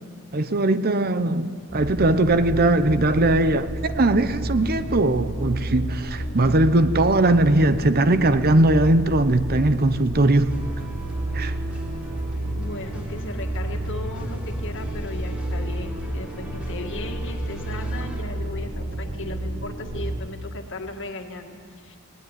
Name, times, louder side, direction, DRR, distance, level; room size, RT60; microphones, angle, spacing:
voice 1, 0.3-10.6 11.3-11.5, right 2 dB, 45° right, 0.8 m, -20 dB
sound 1, 1.7-20.2, right 1 dB, 75° right, 3.4 m, -31 dB
sound 2, 10.5-18.2, right 1 dB, 5° right, 3.4 m, -40 dB
voice 2, 12.5-22.0, left 2 dB, 60° left, 2.0 m, -36 dB
19.5 x 19.5 x 9.1 m
head